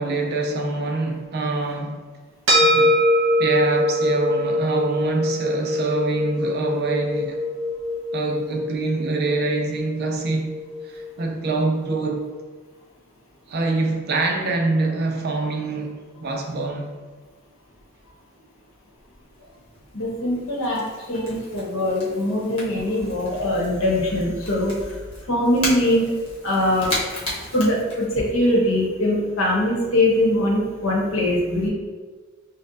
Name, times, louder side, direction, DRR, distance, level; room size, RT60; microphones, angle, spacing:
voice 1, 0.0-2.0 2.6-3.0 3.4-7.4 8.1-10.5 10.8-12.2 13.5-16.9, right 3 dB, 50° right, 2 dB, 0.5 m, -25 dB
sound 1, 2.5-11.1, left 1 dB, 70° right, 1.1 m, -23 dB
Crackle / Crack, 19.0-28.5, left 1 dB, 30° left, 1.0 m, -35 dB
voice 2, 19.9-25.0 25.3-26.1 26.4-26.9 27.5-31.7, left 1 dB, 85° left, -3 dB, 1.0 m, -22 dB
5.3 x 2.1 x 2.6 m, 1.4 s
head